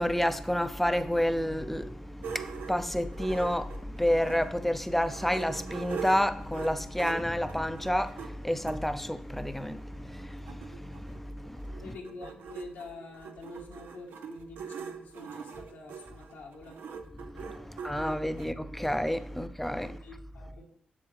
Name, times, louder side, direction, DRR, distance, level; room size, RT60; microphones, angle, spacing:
voice 1, 0.0-11.8 17.2-20.0, equal, 5° left, 0.6 m, -30 dB
sound 1, 2.2-4.5 4.9-8.8 9.6-9.7 10.0-10.1 10.2-18.5, right 6 dB, 80° right, 0.6 m, -42 dB
voice 2, 11.8-16.8 17.6-17.7 19.8-20.6, left 3 dB, 90° left, 1.5 m, -47 dB
7.4 x 6.9 x 3.3 m
supercardioid pair, 40°, 3 cm